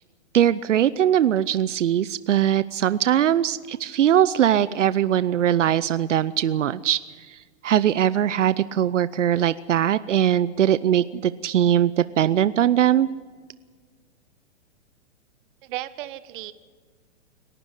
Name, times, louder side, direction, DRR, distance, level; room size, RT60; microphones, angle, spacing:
voice 1, 0.3-7.0 7.3-13.1, right 10 dB, 90° right, 16 dB, 0.7 m, -21 dB
voice 2, 15.6-16.5, right 15 dB, 45° right, 14 dB, 1.3 m, -34 dB
27.5 x 12.0 x 9.9 m, 1.5 s
hypercardioid pair, 130°, 36 cm